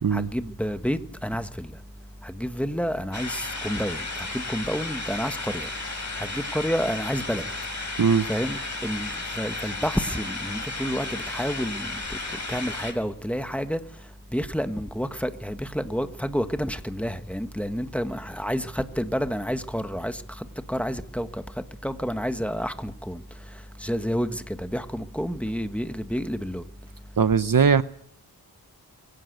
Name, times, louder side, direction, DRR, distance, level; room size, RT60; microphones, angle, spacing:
voice 1, 0.1-1.7 2.2-5.7 6.2-7.4 8.3-9.1 9.4-12.2 12.5-13.8 14.3-20.2 20.7-21.4 21.8-23.2 23.8-26.6, equal, 5° left, 1.6 m, -29 dB
sound 1, 3.1-12.9, left 3 dB, 45° left, 4.1 m, -34 dB
voice 2, 27.2-27.8, right 6 dB, 60° right, 0.8 m, -19 dB
23.0 x 16.5 x 8.1 m
wide cardioid pair, 70°, 39 cm